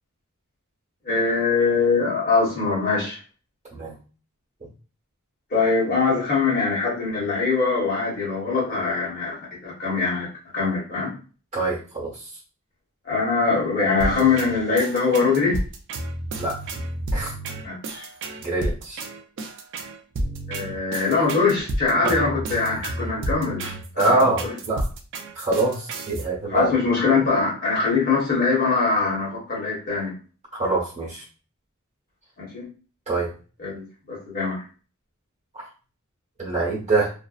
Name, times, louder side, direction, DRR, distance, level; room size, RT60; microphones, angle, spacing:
voice 1, 1.0-3.2 5.5-11.1 13.0-15.6 17.6-18.1 20.5-23.7 23.9-24.5 26.5-30.2 32.5-32.7 33.6-34.6, left 4 dB, 45° left, -4 dB, 1.1 m, -22 dB
voice 2, 11.5-12.4 16.4-16.5 17.1-17.3 18.4-19.1 22.0-22.1 23.6-24.8 25.3-26.7 30.5-31.2 33.1-33.3 35.5-35.7 36.4-37.1, right 2 dB, 35° right, -4 dB, 1.1 m, -25 dB
sound 1, 14.0-26.2, right 1 dB, 55° right, 0.4 m, -31 dB
2.6 x 2.0 x 2.3 m, 0.37 s
head